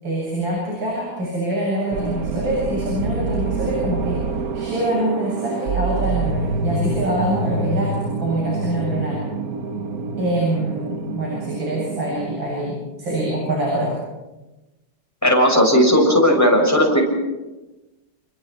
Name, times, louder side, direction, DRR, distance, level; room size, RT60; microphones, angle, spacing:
voice 1, 0.0-4.2 4.5-7.9 8.2-9.2 10.2-13.9, right 1 dB, 75° right, -4 dB, 8.6 m, -24 dB
sound 1, 1.9-12.4, right 3 dB, 50° right, 1.6 m, -26 dB
voice 2, 15.2-17.0, equal, 10° left, 0 dB, 6.5 m, -15 dB
30.0 x 28.5 x 4.5 m, 1.1 s
omnidirectional pair, 2.1 m